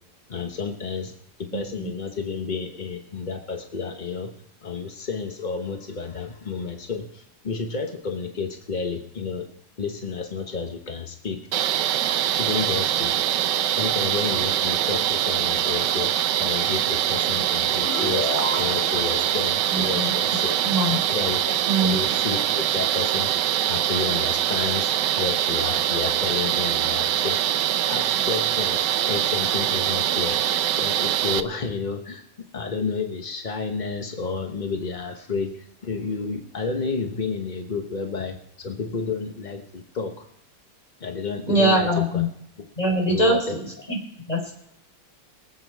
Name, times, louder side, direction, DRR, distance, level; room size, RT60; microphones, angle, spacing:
voice 1, 0.3-1.1 1.4-4.3 4.6-9.5 9.8-11.4 12.3-13.2 13.7-16.1 16.4-20.6 21.1-23.3 23.7-30.4 30.7-32.2 32.5-40.3 41.0-42.2 43.1-43.6 43.8-43.9, left 5 dB, 40° left, 4 dB, 0.7 m, -31 dB
voice 2, 1.5-1.9 19.7-20.1 20.6-21.0 21.7-21.9 41.5-42.3 42.8-44.0 44.3-44.5, right 1 dB, 15° left, 0 dB, 4.0 m, -23 dB
sound 1, 11.5-31.4, right 11 dB, 70° right, 1.1 m, -23 dB
sound 2, 17.8-21.0, left 2 dB, 75° left, 5.7 m, -32 dB
23.5 x 8.2 x 4.7 m, 0.76 s
omnidirectional pair, 2.4 m